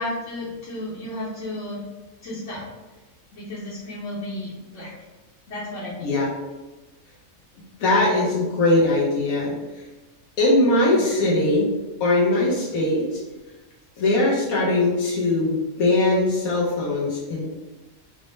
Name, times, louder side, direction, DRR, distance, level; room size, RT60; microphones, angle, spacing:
voice 1, 0.0-1.8 2.2-2.6 3.3-4.9 5.5-6.1 10.9-11.3, left 1 dB, 60° left, -8 dB, 1.1 m, -33 dB
voice 2, 7.8-9.5 10.4-11.7 12.0-13.2 14.0-15.5 15.8-17.4, left 2 dB, 90° left, -6 dB, 1.3 m, -20 dB
4.9 x 2.1 x 3.1 m, 1.1 s
omnidirectional pair, 1.5 m